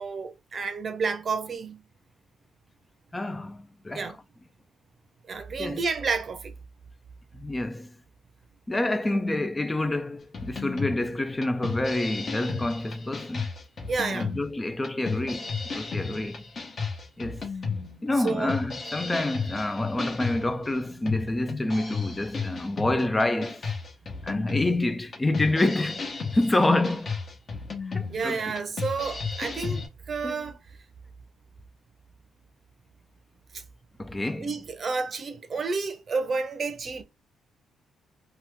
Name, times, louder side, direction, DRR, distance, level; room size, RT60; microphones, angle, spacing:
voice 1, 0.0-1.8 3.9-4.2 5.3-6.5 13.9-14.3 18.2-18.6 28.1-30.6 33.5-33.6 34.3-37.0, right 4 dB, 45° right, 0.6 m, -30 dB
voice 2, 3.1-4.2 5.6-5.8 7.3-7.9 8.7-13.5 14.1-16.5 17.2-17.5 18.0-23.6 24.2-27.1 27.9-28.4 30.2-30.4 34.0-34.5, left 2 dB, 15° left, 0.3 m, -28 dB
sound 1, 10.3-29.9, left 5 dB, 45° left, 1.0 m, -34 dB
3.0 x 2.2 x 3.4 m
cardioid pair, 90°, 0 cm